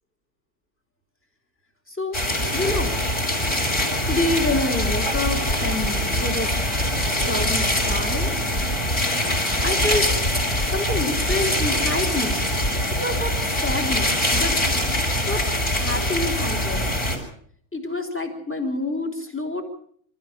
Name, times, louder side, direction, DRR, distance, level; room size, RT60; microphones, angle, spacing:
voice 1, 1.9-2.2 2.5-3.0 4.1-6.5 7.2-8.4 9.6-10.1 10.7-12.4 12.9-14.6 15.3-15.4 15.7-16.9 17.7-19.6, left 2 dB, 5° left, 3 dB, 3.0 m, -27 dB
sound 1, 2.1-17.2, left 1 dB, 20° left, 6.1 m, -23 dB
27.0 x 14.0 x 7.4 m, 0.62 s
omnidirectional pair, 3.4 m